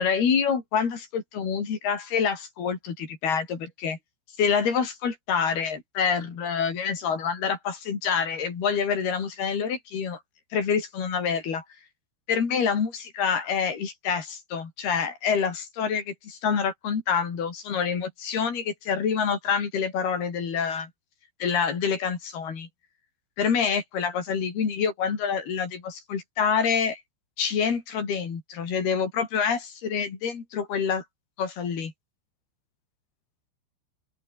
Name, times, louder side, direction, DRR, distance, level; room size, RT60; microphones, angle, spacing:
voice 1, 0.0-4.0 4.4-10.2 10.5-11.6 12.3-20.9 21.4-22.7 23.4-27.0 27.4-31.0 31.4-31.9, left 6 dB, 50° left, 6.0 m, -27 dB
open air
omnidirectional pair, 5.8 m